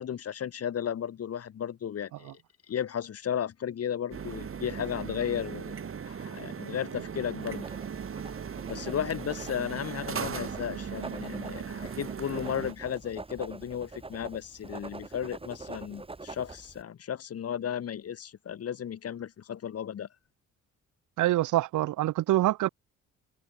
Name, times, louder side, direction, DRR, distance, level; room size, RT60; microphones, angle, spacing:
voice 1, 0.0-2.4 2.7-5.8 6.1-7.7 8.7-20.1, left 9 dB, 55° left, 1.9 m, -34 dB
sound 1, 4.1-12.7, right 7 dB, 45° right, 4.0 m, -38 dB
Writing, 7.4-16.8, right 3 dB, 20° right, 2.0 m, -45 dB
voice 2, 21.2-22.7, right 15 dB, 80° right, 1.1 m, -25 dB
cardioid pair, 90°, 30 cm